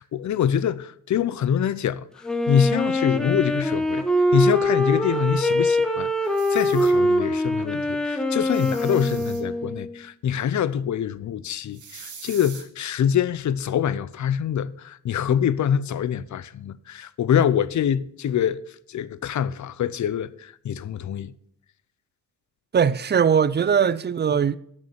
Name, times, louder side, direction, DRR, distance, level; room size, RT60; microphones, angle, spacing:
voice 1, 0.0-4.1 4.3-18.6 18.9-21.3, left 9 dB, 65° left, 0.6 m, -25 dB
Wind instrument woodwind instrument, 2.2-10.0, equal, ahead, 1.2 m, -23 dB
sound 1, 6.2-6.9 8.4-9.4 11.7-12.6, right 6 dB, 65° right, 1.9 m, -43 dB
voice 2, 22.7-24.6, right 7 dB, 35° right, 0.4 m, -20 dB
9.6 x 6.6 x 6.8 m
wide cardioid pair, 105°, 32 cm